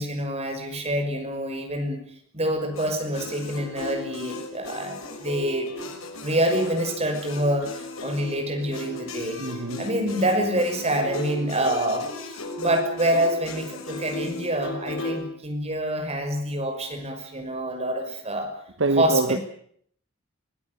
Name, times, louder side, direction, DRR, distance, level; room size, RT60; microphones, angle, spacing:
voice 1, 0.0-2.0 2.3-5.9 6.2-9.4 9.8-12.1 12.5-18.5 18.9-19.4, right 1 dB, 30° right, 6.0 m, -26 dB
sound 1, 2.7-15.2, left 2 dB, 80° left, 6.5 m, -36 dB
voice 2, 9.4-9.9 18.8-19.4, right 3 dB, 60° right, 1.0 m, -24 dB
25.5 x 17.0 x 9.5 m
head